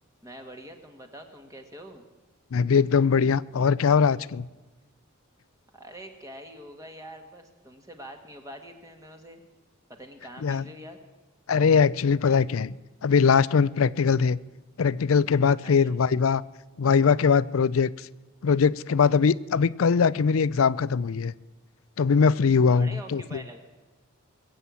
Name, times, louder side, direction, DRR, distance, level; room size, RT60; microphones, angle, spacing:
voice 1, 0.2-2.1 5.7-9.4 9.9-11.0 15.6-15.9 22.7-23.6, equal, 15° right, 4 dB, 1.5 m, -44 dB
voice 2, 2.5-4.5 10.4-10.6 11.5-12.7 13.0-14.4 14.8-16.4 16.8-17.9 18.4-21.3 22.0-23.4, left 5 dB, 80° left, 20 dB, 0.5 m, -21 dB
21.5 x 7.8 x 8.3 m, 1.2 s
head